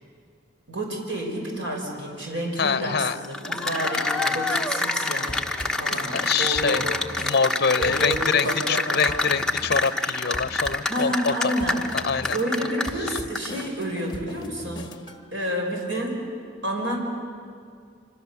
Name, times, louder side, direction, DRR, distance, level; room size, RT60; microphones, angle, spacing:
voice 1, 0.7-5.4 5.8-6.9 7.8-9.2 10.9-11.8 12.3-14.9 15.3-16.2 16.6-17.0, right 1 dB, 80° right, 1 dB, 5.6 m, -29 dB
voice 2, 2.6-3.2 6.1-6.8 7.2-11.5 11.9-12.4, left 6 dB, 55° left, 14 dB, 0.7 m, -25 dB
Cheering / Applause, 3.2-13.6, left 2 dB, 5° left, 1.1 m, -27 dB
sound 1, 5.3-15.2, left 1 dB, 25° left, 1.5 m, -40 dB
27.0 x 25.5 x 7.1 m, 2.2 s
head